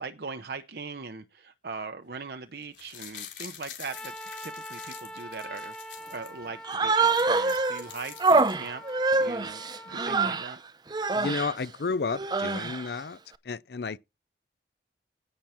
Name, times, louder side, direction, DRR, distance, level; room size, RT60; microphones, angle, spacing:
voice 1, 0.0-4.1 4.4-8.8 9.2-10.6, right 4 dB, 60° right, 0.7 m, -40 dB
sound 1, 2.6-6.3 6.7-6.8 7.0-8.9 9.2-9.3, left 9 dB, 90° left, 3.8 m, -45 dB
Trumpet, 3.9-10.5, equal, 5° left, 0.9 m, -44 dB
Human voice, 6.6-7.8 8.2-10.5 10.9-11.5 12.1-12.9, right 3 dB, 25° right, 0.6 m, -25 dB
voice 2, 11.1-13.2 13.5-14.0, left 4 dB, 65° left, 0.5 m, -31 dB
16.0 x 6.2 x 4.3 m
head